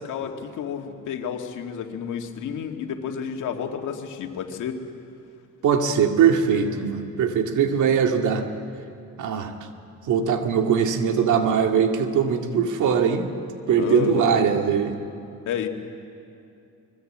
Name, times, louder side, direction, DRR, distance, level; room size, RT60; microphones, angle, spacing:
voice 1, 0.0-4.8 13.8-14.3 15.5-15.7, left 8 dB, 80° left, 4 dB, 2.2 m, -30 dB
voice 2, 5.6-8.5 9.2-9.5 10.1-13.3 13.7-14.9, right 7 dB, 80° right, 4 dB, 2.3 m, -21 dB
25.5 x 21.5 x 8.8 m, 2.6 s
cardioid pair, 90°, 30 cm